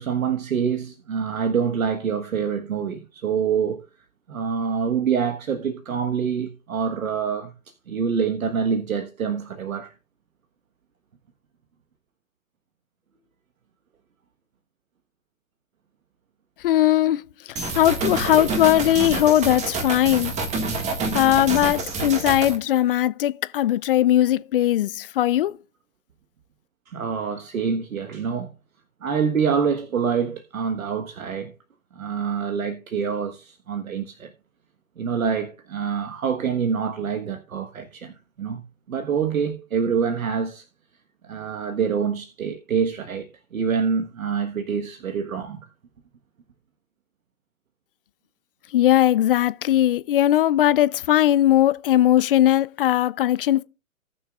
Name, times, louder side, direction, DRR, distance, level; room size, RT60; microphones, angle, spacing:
voice 1, 0.0-3.8 4.3-7.5 7.9-9.9 26.9-28.5 29.0-31.5 31.9-34.3 35.0-38.6 38.9-40.6 41.2-45.6, right 6 dB, 85° right, 1.5 m, -26 dB
voice 2, 16.6-17.2 17.7-20.3 21.1-25.6 48.7-53.6, left 13 dB, 45° left, 0.6 m, -19 dB
sound 1, 17.6-22.6, right 3 dB, 15° right, 1.8 m, -27 dB
18.5 x 6.3 x 2.4 m
hypercardioid pair, 140°, 40 cm